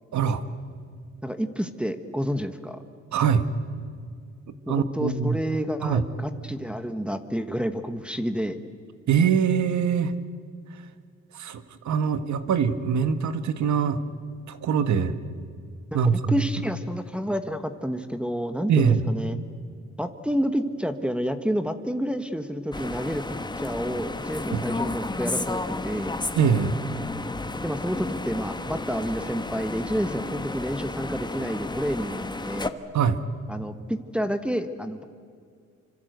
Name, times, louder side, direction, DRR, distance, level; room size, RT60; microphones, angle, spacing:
voice 1, 1.2-2.8 4.7-8.6 15.9-19.4 20.0-26.2 27.6-32.7 33.5-35.0, equal, 5° right, 7 dB, 1.3 m, -29 dB
voice 2, 3.1-3.5 4.7-5.4 5.8-6.0 9.1-10.1 11.3-14.0 14.5-15.1 15.9-16.4 18.7-19.0 24.5-24.6 26.4-26.8 32.9-33.2, right 6 dB, 70° right, 11 dB, 1.6 m, -23 dB
sound 1, 22.7-32.7, left 2 dB, 15° left, 1.3 m, -32 dB
26.5 x 25.5 x 8.1 m, 2.2 s
cardioid pair, 90°, 30 cm